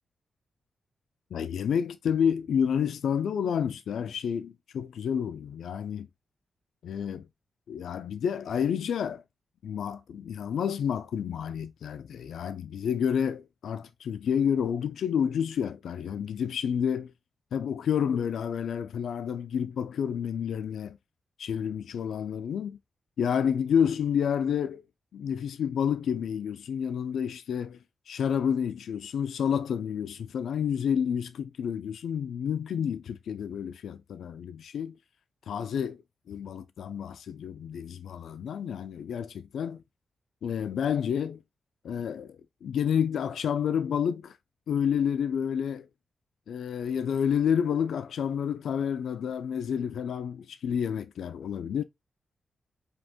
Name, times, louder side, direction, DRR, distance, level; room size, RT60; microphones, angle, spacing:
voice 1, 1.3-6.1 6.8-7.3 7.7-9.2 9.6-17.1 17.5-21.0 21.4-22.8 23.2-24.8 25.1-35.0 35.5-36.0 36.3-39.8 40.4-41.4 41.8-44.4 44.7-45.9 46.5-51.8, left 8 dB, 90° left, 0.4 m, -29 dB
5.1 x 2.4 x 3.6 m
wide cardioid pair, 120°, 0 cm